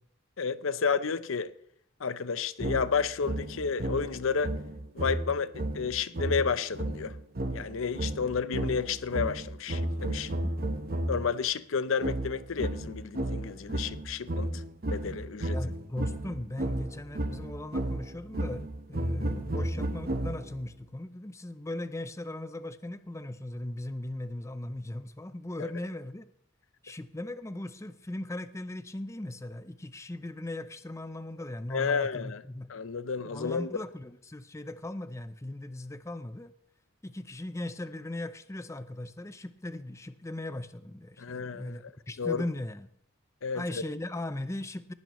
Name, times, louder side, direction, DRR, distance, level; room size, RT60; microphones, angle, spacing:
voice 1, 0.4-1.5 2.0-4.5 4.9-7.2 7.5-10.3 11.1-15.6 25.6-25.7 31.7-32.4 32.7-33.8 41.2-41.8 42.2-42.4 43.4-43.6, left 5 dB, 75° left, 0.6 m, -31 dB
sound 1, 2.6-11.3 12.0-20.7, right 1 dB, 45° right, 1.0 m, -33 dB
voice 2, 15.5-26.2 26.8-32.7 33.2-36.5 37.0-42.9 43.5-44.9, left 1 dB, 15° left, 0.5 m, -38 dB
19.0 x 10.5 x 3.1 m
head